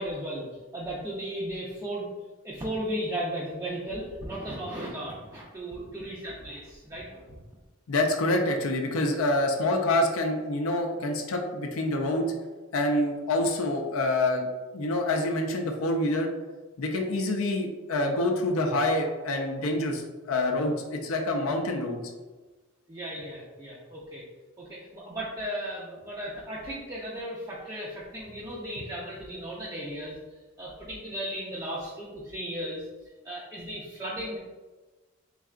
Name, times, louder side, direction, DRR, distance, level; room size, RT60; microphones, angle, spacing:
voice 1, 0.0-2.1 2.4-7.2 22.9-24.2 24.6-30.1 30.6-32.9 33.2-34.4, right 1 dB, 15° right, -6 dB, 0.4 m, -35 dB
voice 2, 7.9-12.3 12.7-14.5 14.7-16.3 16.8-22.0, left 1 dB, 70° left, 2 dB, 0.5 m, -26 dB
3.7 x 3.2 x 2.4 m, 1.3 s
head